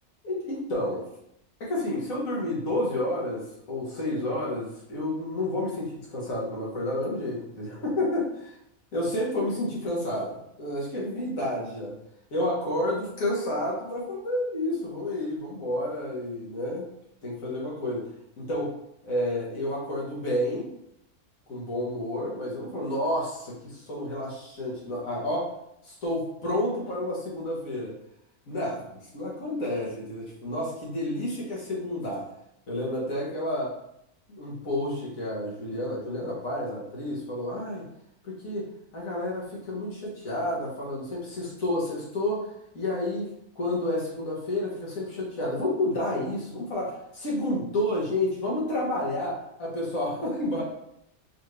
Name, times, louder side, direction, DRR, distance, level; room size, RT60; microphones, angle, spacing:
voice 1, 0.2-1.0 1.6-8.6 8.9-12.0 12.3-16.9 17.2-18.1 18.4-18.7 19.0-20.7 21.5-25.5 25.8-27.9 28.5-32.3 32.7-33.7 34.3-37.9 38.2-42.5 42.7-50.6, left 1 dB, 65° left, -4 dB, 1.7 m, -30 dB
4.8 x 2.7 x 3.2 m, 0.77 s
omnidirectional pair, 1.5 m